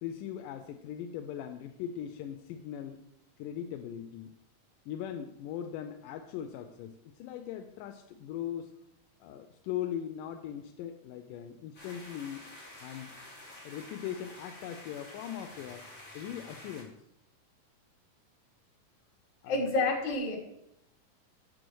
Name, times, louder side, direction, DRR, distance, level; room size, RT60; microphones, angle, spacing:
voice 1, 0.0-3.0 3.4-4.4 4.9-8.7 9.2-12.4 12.8-13.1 13.7-15.9 16.1-16.9 19.4-19.7, left 10 dB, 90° left, 6 dB, 2.2 m, -40 dB
sound 1, 11.7-16.8, left 1 dB, 25° left, 3.0 m, -49 dB
voice 2, 19.5-20.4, left 3 dB, 65° left, 1 dB, 3.0 m, -28 dB
6.8 x 6.3 x 6.2 m, 0.82 s
omnidirectional pair, 3.7 m